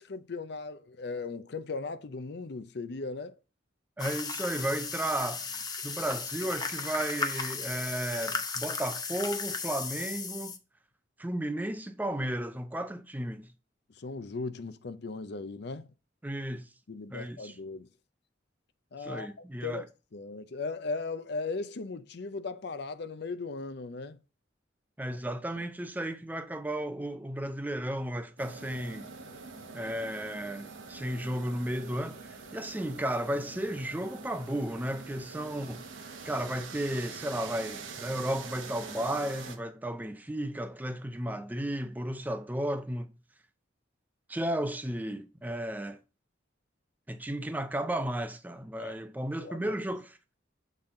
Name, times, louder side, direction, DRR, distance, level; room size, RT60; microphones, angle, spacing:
voice 1, 0.0-3.4 14.0-15.9 16.9-17.9 18.9-19.8 20.1-24.2 29.6-29.7 48.8-49.0 49.4-49.8, left 3 dB, 60° left, 0.6 m, -38 dB
sound 1, 4.0-10.6, left 5 dB, 20° left, 0.7 m, -35 dB
voice 2, 4.0-10.5 11.2-13.5 16.2-16.7 17.1-17.6 19.0-19.8 25.0-29.1 29.7-35.8 36.2-43.1 44.3-46.0 47.1-50.2, right 1 dB, 10° right, 0.4 m, -34 dB
sound 2, 28.4-39.6, right 4 dB, 90° right, 1.1 m, -45 dB
7.2 x 4.1 x 3.8 m
head